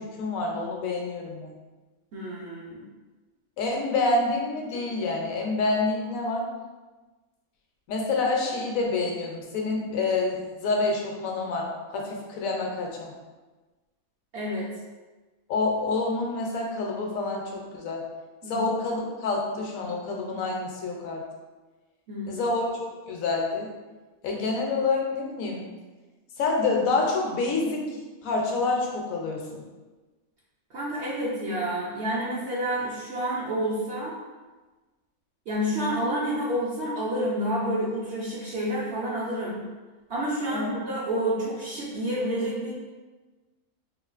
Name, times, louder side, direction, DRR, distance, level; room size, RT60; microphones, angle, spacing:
voice 1, 0.0-1.5 3.6-6.4 7.9-13.1 15.5-18.0 18.5-21.2 22.3-22.8 23.1-23.7 24.2-25.7 26.4-27.8 28.2-29.6 40.5-40.7, left 3 dB, 75° left, 0 dB, 1.0 m, -27 dB
voice 2, 2.1-2.8 14.3-14.7 18.4-18.7 22.1-22.5 30.7-34.2 35.5-39.6 40.1-42.7, equal, 60° right, -6 dB, 0.8 m, -29 dB
3.8 x 2.3 x 2.4 m, 1.2 s
omnidirectional pair, 1.5 m